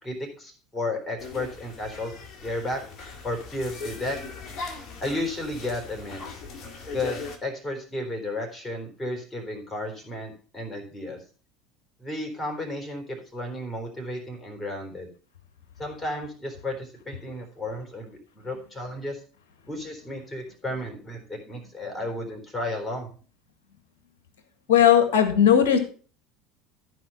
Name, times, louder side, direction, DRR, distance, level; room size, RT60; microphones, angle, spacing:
voice 1, 0.0-2.1 2.4-2.8 3.2-4.2 5.0-6.4 6.9-11.2 12.0-15.1 15.8-19.2 19.7-23.1, left 1 dB, 15° left, 2 dB, 3.9 m, -33 dB
sound 1, 1.2-7.4, left 3 dB, 40° left, 2.0 m, -39 dB
voice 2, 24.7-25.8, left 9 dB, 60° left, 8 dB, 1.7 m, -17 dB
14.5 x 4.8 x 5.5 m, 0.39 s
figure-of-eight pair, 70°, 0 cm